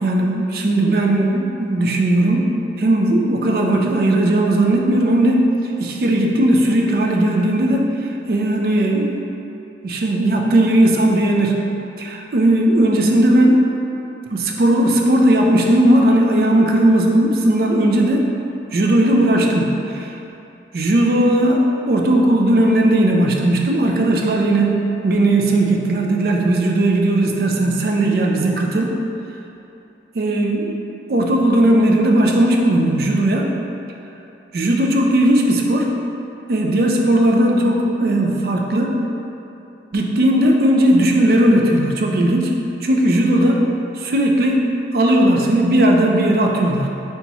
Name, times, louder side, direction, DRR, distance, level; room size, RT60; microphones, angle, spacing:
voice 1, 0.0-2.4 2.8-5.5 5.8-7.8 8.3-9.3 9.8-11.7 12.0-13.7 14.3-18.3 18.7-20.1 20.7-28.9 30.1-30.8 31.1-33.5 34.5-35.9 36.5-39.0 39.9-42.6 42.8-43.6 44.0-44.6 44.9-46.9, right 1 dB, 55° right, 0 dB, 0.4 m, -17 dB
3.4 x 2.9 x 4.1 m, 2.9 s
head